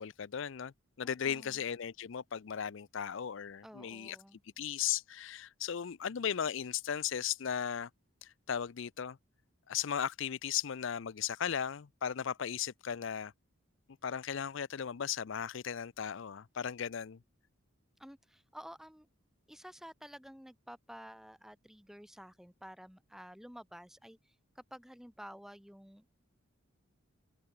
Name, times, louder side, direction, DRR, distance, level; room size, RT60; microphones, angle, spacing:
voice 1, 0.0-4.2 4.6-7.9 8.2-9.2 9.7-13.3 14.0-17.2, left 8 dB, 60° left, 0.5 m, -36 dB
voice 2, 1.0-1.6 3.6-4.4 18.0-19.1 19.5-26.2, equal, ahead, 2.5 m, -51 dB
head